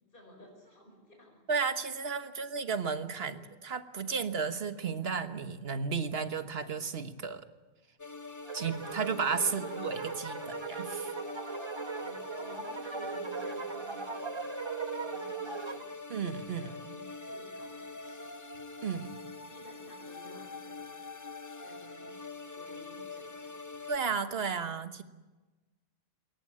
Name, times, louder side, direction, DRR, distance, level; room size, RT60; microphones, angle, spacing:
voice 1, 0.1-1.4 2.4-2.5 3.3-3.5 9.4-9.6 12.0-14.5 15.0-15.9 16.6-18.3 19.5-21.0 21.6-23.9, equal, 55° left, 1 dB, 5.8 m, -56 dB
voice 2, 1.5-7.4 8.5-11.1 16.1-16.7 18.8-19.2 23.9-25.0, right 5 dB, 70° right, 10 dB, 1.5 m, -33 dB
sound 1, 8.0-24.0, left 4 dB, 20° left, 0.6 m, -44 dB
sound 2, 8.4-15.9, right 5 dB, 30° right, 0.9 m, -39 dB
22.5 x 18.5 x 8.8 m, 1.2 s
omnidirectional pair, 1.1 m